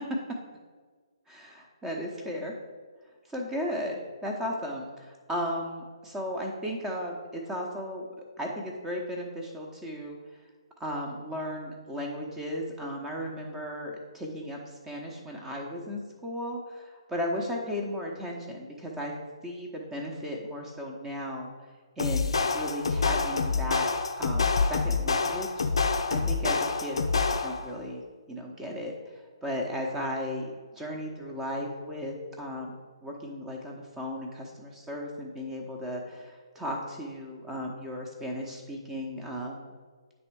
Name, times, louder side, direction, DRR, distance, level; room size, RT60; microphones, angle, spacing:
voice 1, 1.3-2.5 3.3-8.1 8.4-10.2 10.8-19.1 19.4-21.5 22.0-23.9 24.2-25.6 26.1-28.0 28.3-39.7, equal, 10° right, 0 dB, 0.9 m, -35 dB
sound 1, 22.0-27.7, left 4 dB, 60° left, 0.6 m, -27 dB
9.5 x 3.4 x 4.6 m, 1.5 s
figure-of-eight pair, 135°, 3 cm